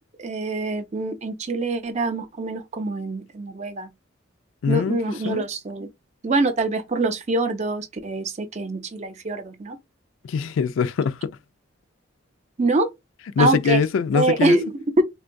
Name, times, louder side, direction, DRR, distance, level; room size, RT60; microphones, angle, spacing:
voice 1, 0.2-3.9 4.7-5.9 6.2-9.8 12.6-12.9 13.4-13.8 14.1-15.0, right 2 dB, 35° right, 0.5 m, -24 dB
voice 2, 4.6-5.0 5.2-5.4 10.2-11.2 13.4-14.6, left 5 dB, 85° left, 0.3 m, -22 dB
3.7 x 2.2 x 2.5 m
head